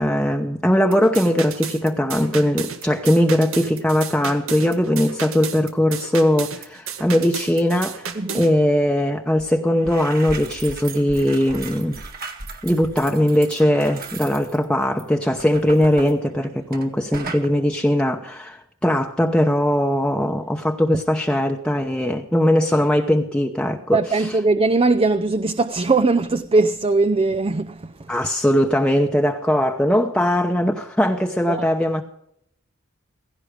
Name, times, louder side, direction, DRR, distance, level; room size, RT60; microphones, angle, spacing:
voice 1, 0.0-12.0 12.6-24.3 28.1-32.0, equal, 5° left, 0.9 m, -20 dB
sound 1, 0.9-8.5, right 6 dB, 90° right, 1.9 m, -33 dB
sound 2, 9.4-9.5 9.7-16.9 17.1-17.5, right 4 dB, 45° right, 2.3 m, -36 dB
voice 2, 23.9-28.1 31.5-31.6, right 3 dB, 25° right, 0.5 m, -20 dB
16.5 x 16.0 x 4.9 m
head